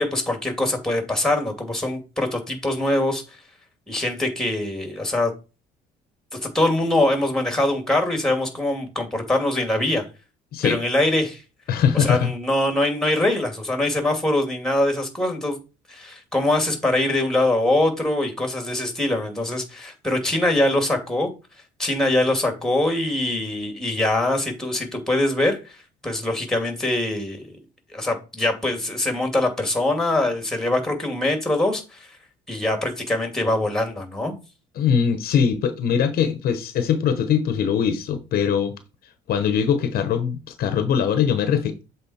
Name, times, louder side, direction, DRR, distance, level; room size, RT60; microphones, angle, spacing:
voice 1, 0.0-3.2 3.9-5.3 6.4-10.0 10.6-11.4 11.9-15.6 15.9-21.3 21.8-25.8 26.0-27.6 27.9-32.1 32.5-34.3, left 1 dB, 5° left, 2.3 m, -23 dB
voice 2, 11.7-12.3 34.8-38.7 39.3-41.8, left 7 dB, 65° left, 0.9 m, -21 dB
7.8 x 3.8 x 4.2 m
cardioid pair, 110°, 17 cm